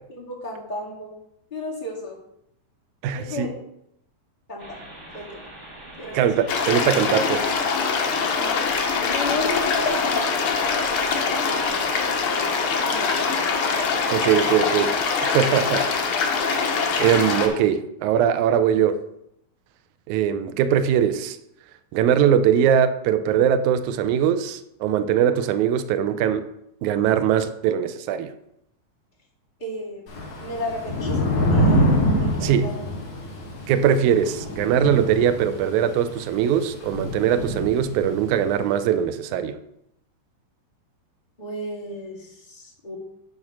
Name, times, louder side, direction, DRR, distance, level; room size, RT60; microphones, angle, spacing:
voice 1, 0.1-1.1 1.5-2.2 3.1-3.5 4.5-4.8 5.1-5.4 6.0-6.2 8.3-12.5 12.9-13.5 29.6-30.0 30.4-32.8 41.4-43.0, left 1 dB, 20° left, -4 dB, 1.6 m, -34 dB
voice 2, 3.0-3.5 6.1-7.5 14.1-14.9 15.2-15.9 17.0-19.0 20.1-21.4 21.9-26.5 26.8-28.3 32.4-32.7 33.7-39.6, right 9 dB, 80° right, 10 dB, 1.9 m, -21 dB
sound 1, 4.6-17.5, right 1 dB, 25° right, 1.8 m, -42 dB
sound 2, 6.5-17.5, left 5 dB, 80° left, 1.2 m, -23 dB
Thunder / Rain, 30.1-38.4, equal, 60° left, 3.4 m, -25 dB
10.5 x 3.6 x 6.0 m, 0.77 s
omnidirectional pair, 3.9 m